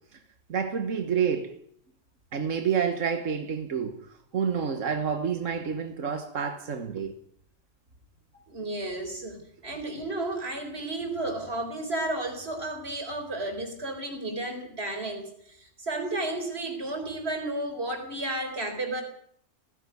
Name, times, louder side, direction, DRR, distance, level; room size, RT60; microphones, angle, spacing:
voice 1, 0.5-1.5 2.3-7.1, right 7 dB, 85° right, 7 dB, 1.7 m, -29 dB
voice 2, 8.5-19.0, right 2 dB, 55° right, 4 dB, 4.5 m, -33 dB
17.5 x 16.5 x 9.6 m, 0.67 s
omnidirectional pair, 1.3 m